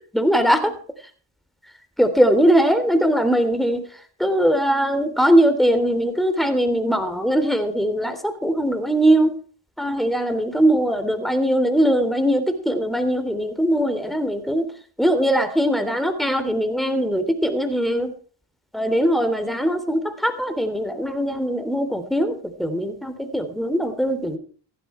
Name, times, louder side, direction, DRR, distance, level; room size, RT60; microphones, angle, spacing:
voice 1, 0.1-0.7 2.0-3.8 4.2-9.3 9.8-14.6 15.0-18.1 18.7-24.4, equal, ahead, 8 dB, 3.3 m, -20 dB
15.5 x 11.5 x 4.5 m, 0.43 s
cardioid pair, 60°, 49 cm